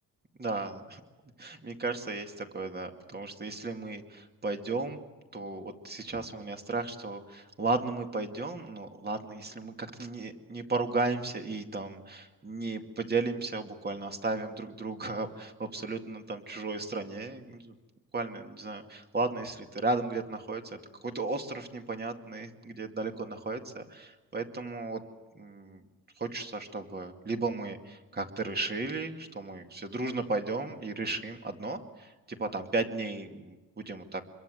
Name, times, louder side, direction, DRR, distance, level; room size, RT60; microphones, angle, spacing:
voice 1, 0.4-1.0 1.4-5.0 5.3-17.8 18.1-25.0 25.3-25.8 26.2-34.2, right 3 dB, 30° right, 5 dB, 2.3 m, -34 dB
26.0 x 22.0 x 7.9 m, 1.2 s
wide cardioid pair, 140°, 34 cm